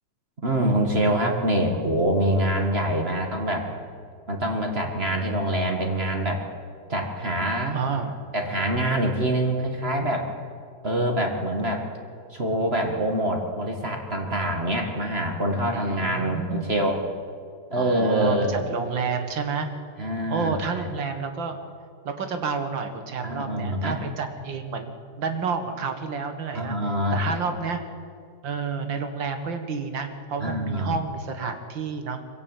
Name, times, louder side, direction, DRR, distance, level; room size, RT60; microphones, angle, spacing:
voice 1, 0.4-3.7 4.3-6.4 6.9-7.8 8.3-10.3 10.8-11.8 12.3-17.0 17.7-18.6 20.0-20.9 23.2-24.0 26.5-27.4 30.4-30.9, right 1 dB, 35° right, 3 dB, 2.1 m, -25 dB
voice 2, 7.7-8.1 15.7-16.7 17.8-19.7 20.3-21.6 22.0-26.8 27.1-27.8 28.4-32.2, right 5 dB, 85° right, 7 dB, 2.4 m, -30 dB
22.5 x 16.0 x 9.1 m, 2.2 s
omnidirectional pair, 2.0 m